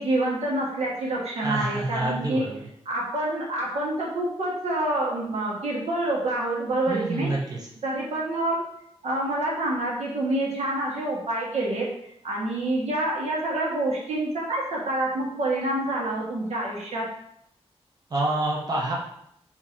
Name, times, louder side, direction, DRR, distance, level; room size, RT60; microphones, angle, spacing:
voice 1, 0.0-2.4 2.8-7.3 7.8-8.6 9.0-11.9 12.2-17.1, right 1 dB, 85° right, -4 dB, 1.3 m, -27 dB
voice 2, 1.4-2.6 6.9-7.6 18.1-18.9, right 2 dB, 35° right, -3 dB, 0.8 m, -27 dB
3.8 x 2.9 x 4.5 m, 0.73 s
wide cardioid pair, 125°, 11 cm